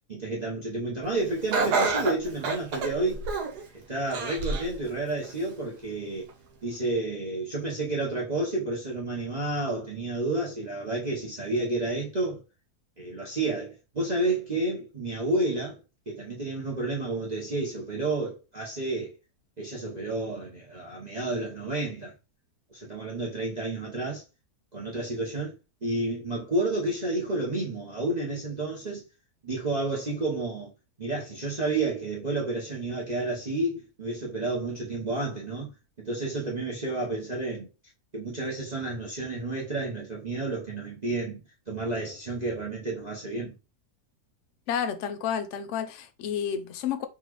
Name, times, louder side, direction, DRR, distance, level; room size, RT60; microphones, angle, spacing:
voice 1, 0.1-3.3 3.7-6.3 6.6-12.4 13.0-15.8 16.1-19.1 19.6-22.1 22.7-24.2 24.7-25.5 25.8-29.0 29.4-30.7 31.0-35.7 36.0-37.7 38.1-41.4 41.7-43.6, right 2 dB, 30° right, 0.9 m, -30 dB
Laughter, 1.5-3.6 4.1-4.7 5.2-5.3 6.3-6.4, right 4 dB, 80° right, 1.4 m, -28 dB
voice 2, 44.7-47.1, left 8 dB, 65° left, 0.7 m, -30 dB
4.1 x 3.1 x 3.0 m
omnidirectional pair, 1.7 m